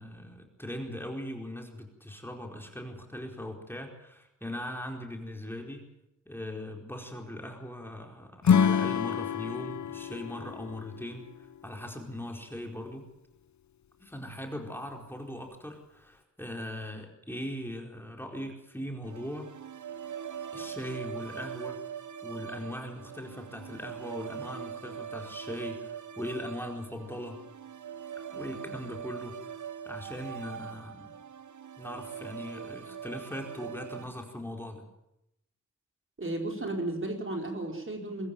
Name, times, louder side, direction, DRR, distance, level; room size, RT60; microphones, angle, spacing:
voice 1, 0.0-5.9 6.3-11.3 11.6-13.1 14.0-19.5 20.5-21.8 22.2-27.4 28.3-29.6 29.9-31.1 31.8-34.8, left 1 dB, 5° left, 2 dB, 4.5 m, -40 dB
Acoustic guitar / Strum, 8.4-11.7, left 7 dB, 65° left, 0.8 m, -27 dB
sound 1, 19.0-34.1, right 8 dB, 70° right, 1.1 m, -42 dB
voice 2, 36.2-38.3, right 2 dB, 40° right, 2 dB, 4.8 m, -34 dB
23.0 x 14.0 x 9.1 m, 0.84 s
cardioid pair, 60°, 31 cm